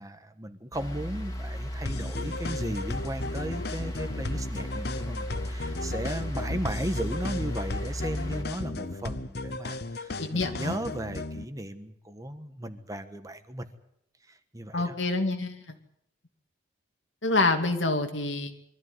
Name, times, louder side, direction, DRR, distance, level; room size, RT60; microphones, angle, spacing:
voice 1, 0.0-13.7 14.3-15.0, right 1 dB, 20° right, 9 dB, 1.3 m, -36 dB
sound 1, 0.7-8.4, equal, 15° left, 2.8 m, -35 dB
sound 2, 1.9-11.5, left 2 dB, 55° left, 0.9 m, -36 dB
voice 2, 10.2-10.7 14.7-15.6 17.2-18.5, left 2 dB, 75° left, 6 dB, 2.6 m, -27 dB
23.5 x 14.5 x 9.7 m, 0.76 s
head